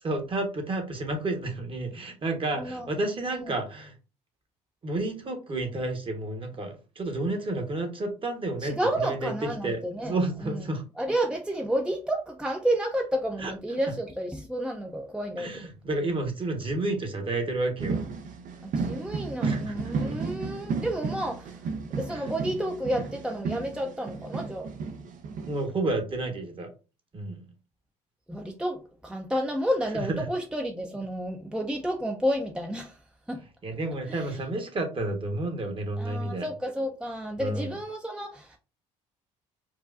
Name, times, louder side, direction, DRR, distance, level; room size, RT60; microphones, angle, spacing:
voice 1, 0.0-3.9 4.8-9.3 9.6-10.8 13.4-13.5 15.4-18.0 19.4-20.2 22.1-22.3 25.5-26.7 27.1-27.5 29.9-30.2 33.6-36.5 37.4-37.7, right 2 dB, 35° right, 1.2 m, -31 dB
voice 2, 2.5-2.9 3.3-3.5 8.6-10.7 11.0-15.7 18.6-21.5 21.9-24.7 28.3-33.0 33.3-33.4 34.1-34.4 36.0-38.6, right 1 dB, 5° right, 0.5 m, -31 dB
sound 1, 17.8-25.7, right 4 dB, 55° right, 0.7 m, -33 dB
4.6 x 2.3 x 2.5 m
supercardioid pair, 65°, 15 cm